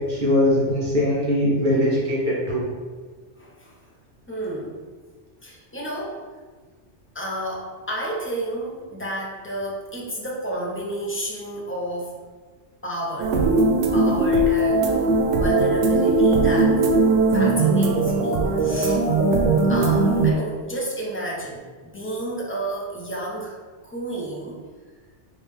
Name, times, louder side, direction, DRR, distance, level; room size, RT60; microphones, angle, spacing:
voice 1, 0.1-2.7, left 1 dB, 45° right, -6 dB, 1.1 m, -21 dB
voice 2, 3.4-3.8 4.3-4.8 5.4-6.2 7.1-12.1 12.8-13.4 13.9-16.8 17.3-19.0 19.6-23.5 23.8-24.6, right 1 dB, 15° left, -3 dB, 0.5 m, -31 dB
sound 1, 13.2-20.3, right 2 dB, 90° right, 0.9 m, -19 dB
3.3 x 3.1 x 3.5 m, 1.4 s
omnidirectional pair, 1.2 m